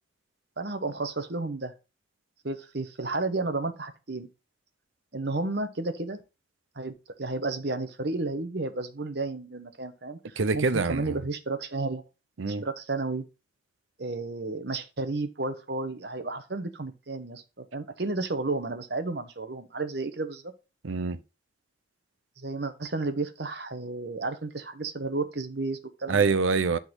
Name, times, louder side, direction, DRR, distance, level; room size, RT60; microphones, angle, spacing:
voice 1, 0.6-1.7 2.4-4.3 5.1-6.2 6.7-12.0 12.5-13.2 14.0-20.5 22.4-26.2, right 3 dB, 55° right, 1.1 m, -32 dB
voice 2, 10.4-11.2 12.4-12.6 20.8-21.2 26.1-26.8, right 4 dB, 85° right, 0.7 m, -25 dB
10.5 x 4.0 x 3.9 m
head